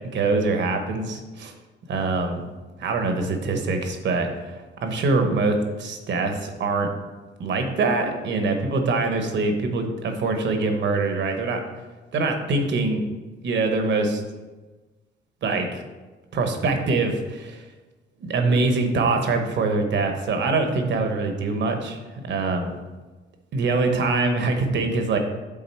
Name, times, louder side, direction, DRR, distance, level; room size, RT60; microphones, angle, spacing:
voice 1, 0.1-1.5 1.9-2.4 2.8-4.5 4.8-6.9 7.4-11.6 12.1-13.0 13.4-14.2 15.4-15.7 16.3-17.6 18.2-22.0 22.3-22.7 23.5-25.2, right 3 dB, 65° right, 5 dB, 1.0 m, -24 dB
7.3 x 3.9 x 4.4 m, 1.2 s
cardioid pair, 90°, 20 cm